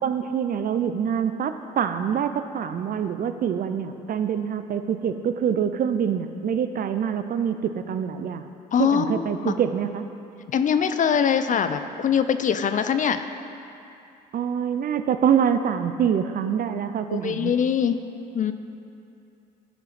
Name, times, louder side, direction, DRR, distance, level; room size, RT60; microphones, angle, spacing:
voice 1, 0.0-8.4 8.8-10.1 14.3-17.5, right 8 dB, 45° right, 9 dB, 0.6 m, -25 dB
voice 2, 8.7-9.6 10.5-13.2 17.1-18.0 18.3-18.5, left 7 dB, 40° left, 10 dB, 0.5 m, -23 dB
12.5 x 5.7 x 4.0 m, 2.7 s
hypercardioid pair, 55°, 21 cm